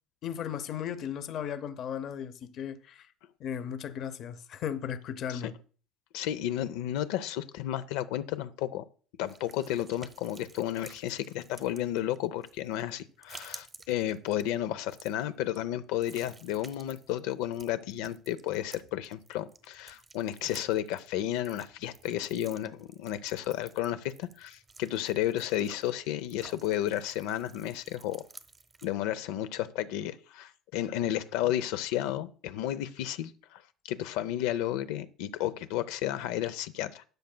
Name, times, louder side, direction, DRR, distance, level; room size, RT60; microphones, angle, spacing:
voice 1, 0.2-3.1 3.4-5.5, left 9 dB, 40° left, 0.6 m, -36 dB
voice 2, 6.1-8.8 9.2-28.2 28.8-37.0, left 12 dB, 90° left, 0.5 m, -32 dB
sound 1, 9.3-28.9, right 4 dB, 15° right, 0.7 m, -53 dB
13.0 x 9.3 x 2.2 m
cardioid pair, 170°, 0 cm